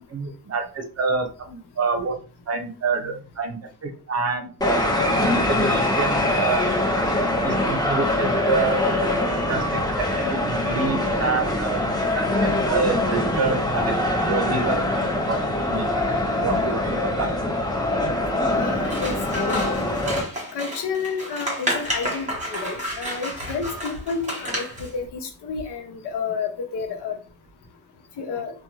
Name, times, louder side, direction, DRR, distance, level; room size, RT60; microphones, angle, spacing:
voice 1, 0.0-2.1 2.5-4.8 5.2-6.6 7.4-8.8 9.3-11.8 12.1-13.9 14.3-14.8 15.3-15.9 16.4-17.3, right 4 dB, 40° right, 6 dB, 0.7 m, -27 dB
sound 1, 4.6-20.2, left 1 dB, 10° left, 0.9 m, -23 dB
voice 2, 18.5-19.8 20.5-27.2 28.2-28.5, left 5 dB, 80° left, 3 dB, 0.9 m, -30 dB
Scissors, 18.8-24.9, equal, 20° right, 1.2 m, -31 dB
2.5 x 2.3 x 3.0 m, 0.36 s
cardioid pair, 115°, 39 cm